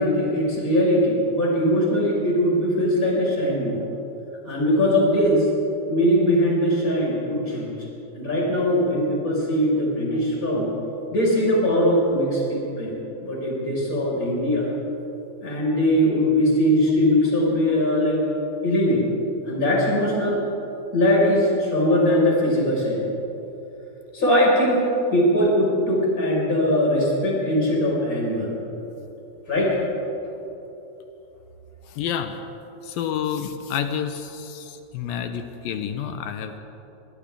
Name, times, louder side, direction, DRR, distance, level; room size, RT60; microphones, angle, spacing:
voice 1, 0.0-3.8 4.4-5.5 5.9-7.7 8.1-10.7 11.1-14.7 15.4-18.2 18.6-19.0 19.4-20.4 20.9-23.0 24.1-28.6 29.5-29.8, equal, 20° left, -5 dB, 6.2 m, -21 dB
voice 2, 31.9-32.4 32.8-36.6, left 8 dB, 80° left, 7 dB, 2.8 m, -29 dB
29.0 x 24.0 x 3.8 m, 3.0 s
omnidirectional pair, 4.2 m